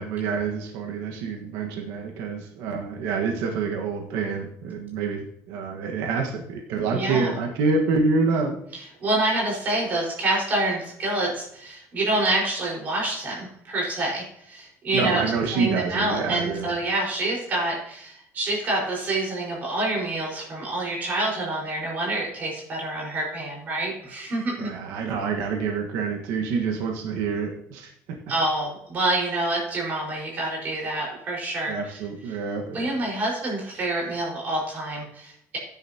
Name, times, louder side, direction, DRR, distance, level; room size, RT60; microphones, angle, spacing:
voice 1, 0.0-8.6 14.9-16.7 24.6-28.2 31.7-32.9, right 4 dB, 90° right, 2 dB, 1.5 m, -27 dB
voice 2, 6.9-7.3 9.0-15.2 15.5-24.7 28.3-31.7 32.7-35.6, right 2 dB, 30° right, -3 dB, 4.9 m, -27 dB
15.0 x 10.0 x 2.9 m, 0.73 s
cardioid pair, 180°, 5 cm